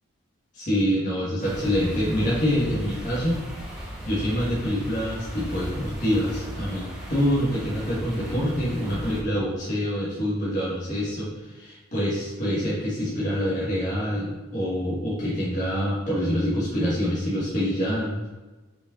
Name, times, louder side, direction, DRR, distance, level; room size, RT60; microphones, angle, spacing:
voice 1, 0.5-3.5 4.0-18.3, equal, 35° left, -8 dB, 1.9 m, -26 dB
sound 1, 1.4-9.2, equal, 5° right, 1.6 m, -36 dB
6.7 x 5.3 x 3.9 m, 1.2 s
head